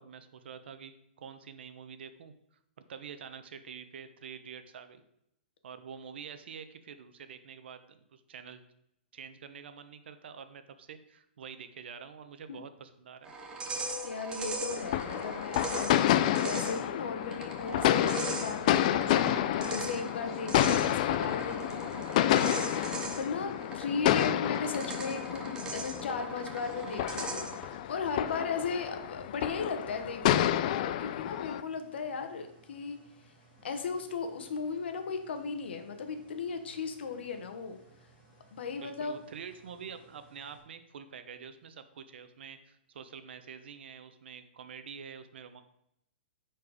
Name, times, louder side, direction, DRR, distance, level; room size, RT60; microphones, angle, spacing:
voice 1, 0.0-2.6 2.9-5.0 5.6-8.6 9.1-13.3 38.7-45.6, right 7 dB, 75° right, 10 dB, 0.9 m, -47 dB
sound 1, 13.2-27.7, right 3 dB, 15° right, 1.0 m, -40 dB
voice 2, 14.0-33.0 33.6-37.8 38.5-39.2, left 5 dB, 75° left, 7 dB, 1.4 m, -37 dB
sound 2, 14.7-31.6, left 12 dB, 45° left, 0.4 m, -30 dB
sound 3, 23.1-40.6, right 2 dB, 20° left, 2.5 m, -61 dB
9.6 x 4.5 x 4.9 m, 0.79 s
hypercardioid pair, 160°, 6 cm